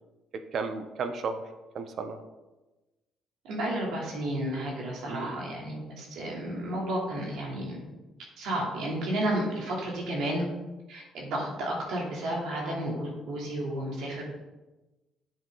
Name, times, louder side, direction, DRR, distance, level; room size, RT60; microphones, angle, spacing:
voice 1, 0.3-2.2 5.0-5.4, right 4 dB, 45° right, 9 dB, 0.6 m, -34 dB
voice 2, 3.4-7.8 8.4-10.4 10.9-14.2, right 1 dB, 80° right, -3 dB, 2.9 m, -32 dB
9.3 x 7.5 x 3.8 m, 1.1 s
cardioid pair, 175°, 0 cm